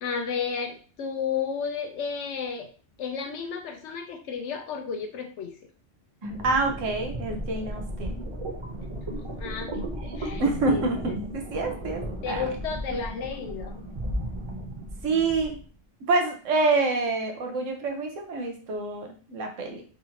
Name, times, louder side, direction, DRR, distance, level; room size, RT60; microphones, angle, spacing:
voice 1, 0.0-2.7 3.0-5.5 9.4-10.8 12.2-13.8, left 6 dB, 70° left, 5 dB, 0.9 m, -32 dB
sound 1, 6.2-15.6, right 1 dB, 35° right, 0.5 m, -35 dB
voice 2, 6.2-8.2 9.9-12.4 12.9-13.0 15.0-15.6 16.1-19.8, right 3 dB, 80° right, 3 dB, 1.1 m, -27 dB
3.8 x 2.6 x 2.8 m, 0.39 s
omnidirectional pair, 1.3 m